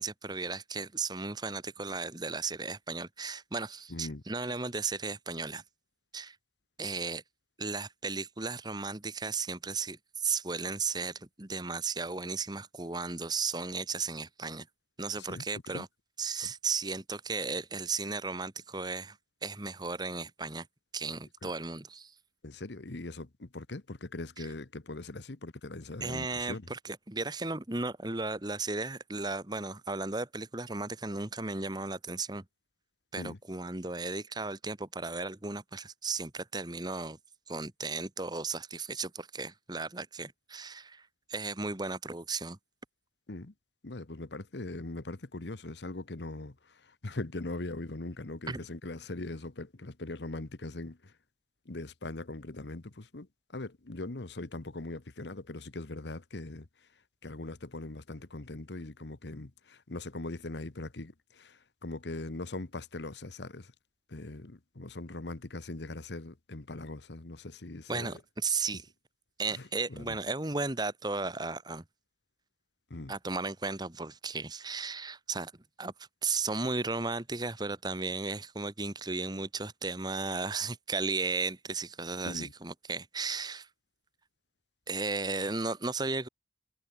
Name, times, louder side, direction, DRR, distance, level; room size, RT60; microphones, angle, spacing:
voice 1, 0.0-5.6 6.1-6.4 6.8-7.2 7.6-14.7 15.0-15.9 16.2-20.7 20.9-22.1 26.0-32.4 33.1-37.2 37.5-42.6 48.5-48.6 67.9-68.9 69.4-71.8 73.1-75.5 75.8-75.9 76.2-83.7 84.9-86.3, right 4 dB, 25° right, 1.5 m, -35 dB
voice 2, 3.9-4.2 15.2-15.9 16.4-16.5 21.4-21.5 22.4-26.7 33.2-33.4 43.3-43.5 43.8-51.2 51.6-63.7 64.1-68.2 69.5-70.2 72.9-73.1 82.2-82.5, left 2 dB, 75° left, 1.2 m, -41 dB
head